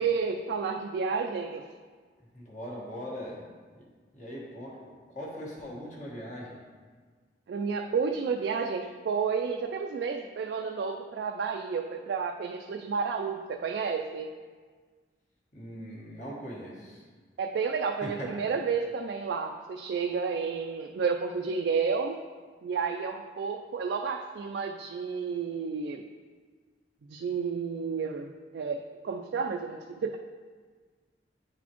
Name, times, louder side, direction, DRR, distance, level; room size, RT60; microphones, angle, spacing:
voice 1, 0.0-1.6 7.5-14.3 17.4-22.2 22.6-26.0 27.1-30.2, right 5 dB, 70° right, 3 dB, 0.3 m, -31 dB
voice 2, 2.3-3.4 3.7-3.9 4.1-4.8 5.1-6.6 15.5-17.0 18.0-18.3, equal, 40° left, -4 dB, 1.4 m, -40 dB
9.4 x 4.1 x 3.0 m, 1.5 s
head